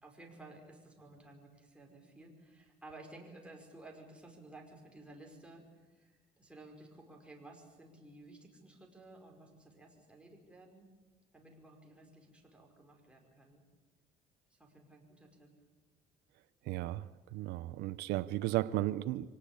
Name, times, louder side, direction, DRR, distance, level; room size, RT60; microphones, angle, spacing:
voice 1, 0.0-10.9 11.3-13.7 14.5-15.5, right 2 dB, 5° right, 5.2 m, -55 dB
voice 2, 16.7-19.3, right 16 dB, 85° right, 0.7 m, -35 dB
24.5 x 18.5 x 8.7 m
cardioid pair, 110°, 17 cm